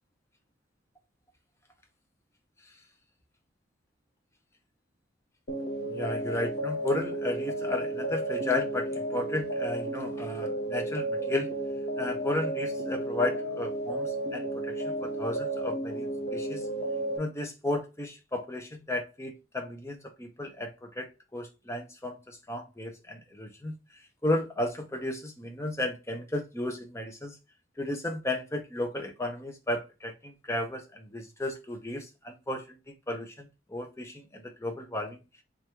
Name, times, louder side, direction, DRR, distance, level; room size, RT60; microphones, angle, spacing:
sound 1, 5.5-17.2, right 1 dB, 55° left, 0.8 m, -33 dB
voice 1, 5.9-11.5 12.0-16.7 17.2-27.4 27.8-32.8 33.1-35.2, left 1 dB, 15° left, 0.6 m, -34 dB
3.5 x 3.0 x 3.4 m
head